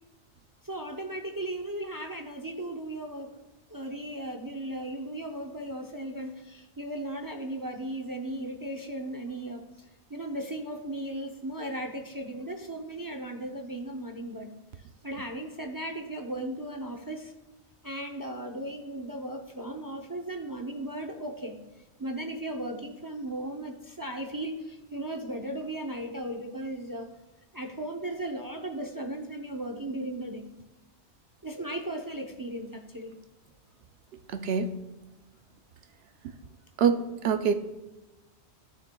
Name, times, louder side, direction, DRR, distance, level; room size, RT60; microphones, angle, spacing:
voice 1, 0.6-3.4 3.7-9.7 10.1-14.5 15.0-17.3 17.8-21.6 22.0-27.1 27.5-30.4 31.4-33.1, right 1 dB, 25° right, 4 dB, 0.5 m, -36 dB
voice 2, 34.3-34.8 36.8-37.5, right 6 dB, 70° right, 8 dB, 0.8 m, -25 dB
15.0 x 6.5 x 2.3 m, 1.0 s
omnidirectional pair, 1.1 m